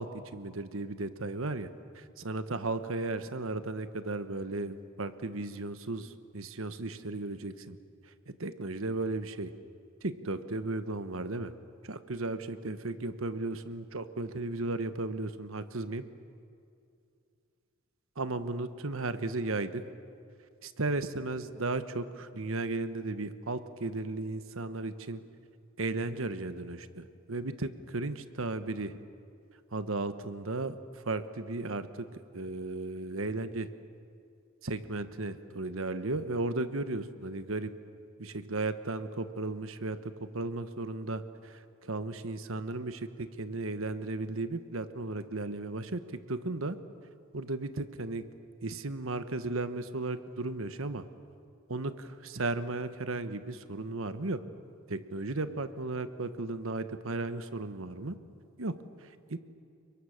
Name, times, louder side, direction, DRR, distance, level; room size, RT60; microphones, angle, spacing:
voice 1, 0.0-1.7 1.9-7.8 8.4-9.5 10.0-11.5 11.8-16.0 18.2-19.8 20.6-25.2 25.8-29.0 29.7-30.8 31.0-32.1 32.3-33.7 34.6-37.7 38.2-46.0 46.3-46.8 47.3-48.2 48.6-51.0 51.7-54.4 54.9-58.2 58.6-58.7 59.0-59.4, right 2 dB, 70° right, 11 dB, 1.2 m, -35 dB
30.0 x 23.5 x 6.5 m, 2.5 s
head